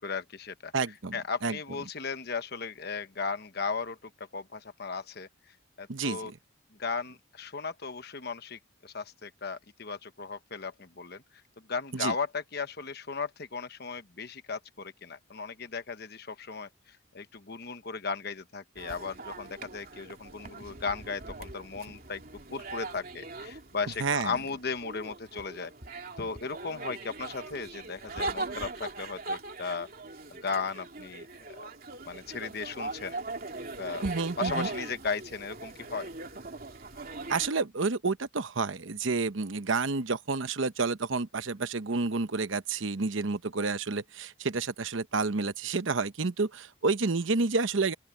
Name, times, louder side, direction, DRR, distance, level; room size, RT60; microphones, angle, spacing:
voice 1, 0.0-0.7 1.1-5.3 5.8-6.3 6.8-11.2 11.7-22.2 22.5-25.7 26.2-29.9 30.3-31.3 31.5-31.7 32.1-33.2 33.8-34.0 34.4-36.1, left 5 dB, 50° left, 1.1 m, -36 dB
voice 2, 0.7-1.2 1.4-1.6 5.9-6.4 11.9-12.1 24.0-24.3 34.0-34.7 37.3-47.9, right 4 dB, 65° right, 0.9 m, -29 dB
sound 1, 18.8-37.5, right 2 dB, 45° right, 3.0 m, -40 dB
open air
head